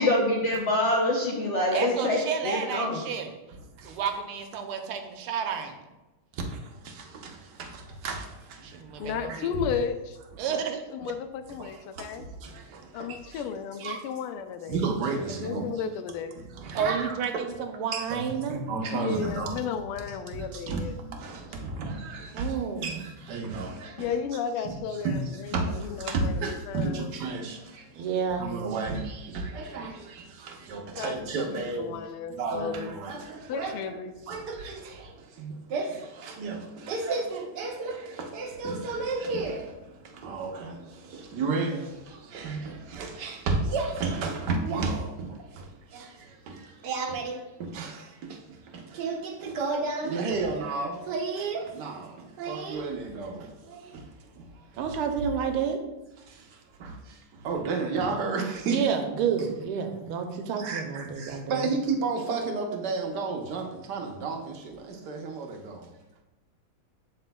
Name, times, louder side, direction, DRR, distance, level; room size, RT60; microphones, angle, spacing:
voice 1, 0.0-3.0, left 1 dB, 65° left, 0.7 m, -25 dB
voice 2, 1.7-3.3 3.8-5.8 8.6-9.5 10.4-10.8 16.7-18.6 22.3-22.9 28.0-28.5 54.8-55.8 58.7-61.6, right 7 dB, 85° right, 1.6 m, -30 dB
voice 3, 3.5-4.0 6.3-9.6 11.5-13.4 13.8-14.0 14.7-15.8 16.4-17.2 17.9-18.2 18.5-19.7 20.0-24.1 24.6-32.0 32.3-34.0 34.3-54.9 56.2-59.0 60.6-66.0, right 3 dB, 60° right, 1.2 m, -33 dB
voice 4, 9.0-10.0 10.5-12.2 12.9-14.8 15.4-16.3 18.9-20.9 24.0-27.1 31.0-32.9 33.5-34.1, left 7 dB, 80° left, 1.5 m, -34 dB
11.0 x 4.1 x 2.2 m
omnidirectional pair, 2.4 m